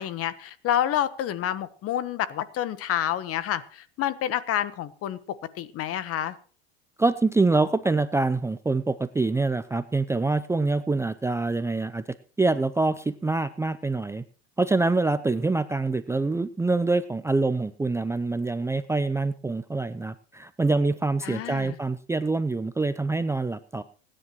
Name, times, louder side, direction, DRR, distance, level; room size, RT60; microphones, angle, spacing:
voice 1, 0.0-6.4 21.2-21.8, left 11 dB, 45° left, 15 dB, 1.2 m, -29 dB
voice 2, 7.0-12.0 12.4-14.2 14.6-23.8, right 3 dB, 10° right, 12 dB, 0.5 m, -25 dB
26.0 x 10.0 x 3.1 m, 0.41 s
supercardioid pair, 95°, 31 cm